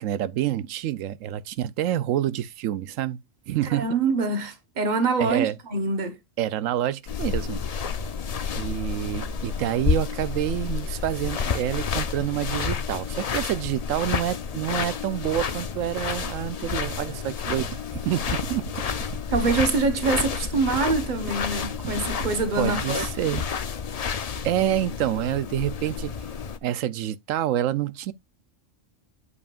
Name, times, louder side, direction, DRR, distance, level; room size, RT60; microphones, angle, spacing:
voice 1, 0.0-3.2 3.5-3.9 5.2-5.6 6.4-7.6 8.5-18.7 22.6-23.4 24.4-26.1 26.6-28.1, right 12 dB, 90° right, 1.0 m, -27 dB
voice 2, 3.6-6.2 19.3-23.0, right 4 dB, 40° right, 1.3 m, -25 dB
sound 1, 7.1-26.6, left 6 dB, 45° left, 0.5 m, -30 dB
sound 2, 17.6-23.5, right 8 dB, 70° right, 1.2 m, -39 dB
8.5 x 7.2 x 2.4 m
omnidirectional pair, 1.3 m